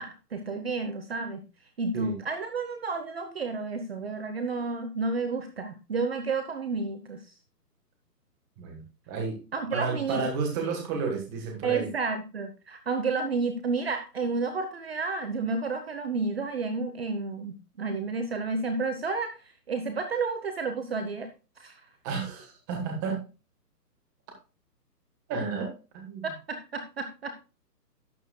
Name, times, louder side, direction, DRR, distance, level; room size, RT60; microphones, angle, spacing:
voice 1, 0.0-1.4 1.8-7.2 9.5-10.2 11.6-19.3 19.7-21.3 21.6-21.8 26.2-27.3, right 4 dB, 40° right, 8 dB, 0.9 m, -31 dB
voice 2, 9.1-9.4 9.7-11.9 22.0-23.2 25.3-25.7 25.9-26.3, right 4 dB, 10° right, 2 dB, 1.3 m, -31 dB
11.5 x 8.9 x 2.2 m, 0.32 s
hypercardioid pair, 165°, 49 cm